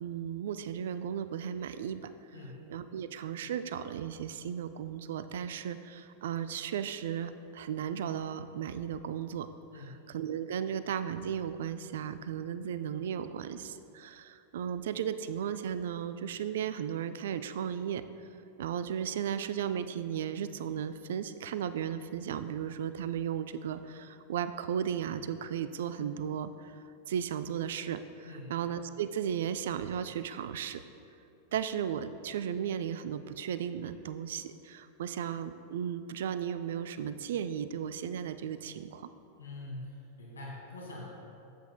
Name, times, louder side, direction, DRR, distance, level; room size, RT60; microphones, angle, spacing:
voice 1, 0.0-2.1 2.7-9.5 9.8-9.9 10.1-18.0 18.6-26.7 27.1-30.8 31.5-39.1, right 8 dB, 60° right, 12 dB, 0.3 m, -35 dB
voice 2, 2.3-2.7 9.7-10.0 28.2-28.6 39.4-41.1, left 2 dB, 75° left, -4 dB, 1.8 m, -44 dB
13.0 x 8.0 x 2.2 m, 2.7 s
figure-of-eight pair, 90°, 0 cm